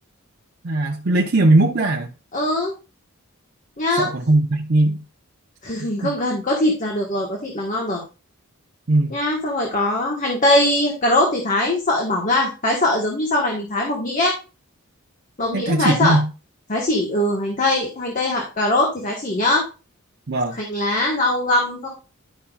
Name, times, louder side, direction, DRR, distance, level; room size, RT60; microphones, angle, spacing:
voice 1, 0.6-2.1 3.9-5.0 6.0-6.1 8.9-9.1 15.5-16.3 20.3-20.6, right 2 dB, 50° right, 0.7 m, -19 dB
voice 2, 2.3-2.7 3.8-4.1 5.6-8.0 9.1-14.3 15.4-16.2 16.7-19.6 20.5-21.9, left 1 dB, 40° left, 1.5 m, -21 dB
11.0 x 5.7 x 2.4 m
head